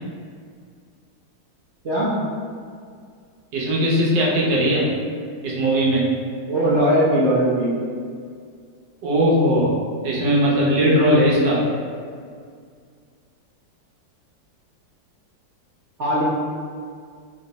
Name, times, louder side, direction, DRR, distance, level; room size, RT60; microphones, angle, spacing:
voice 1, 3.5-4.9 5.4-6.2 9.0-9.7 10.0-11.7, equal, 75° right, -4 dB, 1.5 m, -19 dB
voice 2, 6.4-7.7 16.0-16.2, equal, 50° right, -9 dB, 1.0 m, -19 dB
3.6 x 3.2 x 4.0 m, 2.1 s
omnidirectional pair, 2.0 m